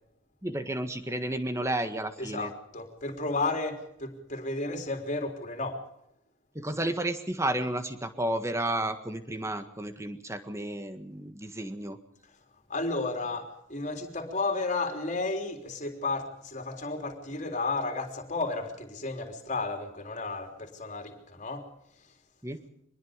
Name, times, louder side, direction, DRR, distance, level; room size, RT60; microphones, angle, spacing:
voice 1, 0.4-2.5 6.5-12.0 22.4-22.6, right 1 dB, 15° right, 8 dB, 1.7 m, -32 dB
voice 2, 2.2-5.8 12.7-21.7, left 3 dB, 40° left, 4 dB, 3.6 m, -33 dB
24.5 x 21.0 x 5.2 m, 0.78 s
head